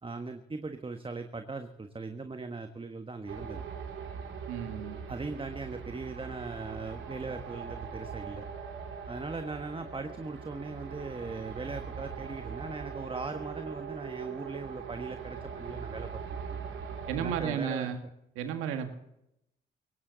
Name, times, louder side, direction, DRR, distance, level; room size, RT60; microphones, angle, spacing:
voice 1, 0.0-3.6 5.1-8.5 9.1-16.6 17.1-17.9, right 3 dB, 25° right, 7 dB, 1.4 m, -39 dB
sound 1, 3.3-17.5, right 6 dB, 70° right, 2.9 m, -41 dB
voice 2, 4.5-5.0 17.1-18.0 18.3-18.9, right 8 dB, 85° right, 8 dB, 1.7 m, -33 dB
17.5 x 17.0 x 4.0 m, 0.82 s
supercardioid pair, 50°, 21 cm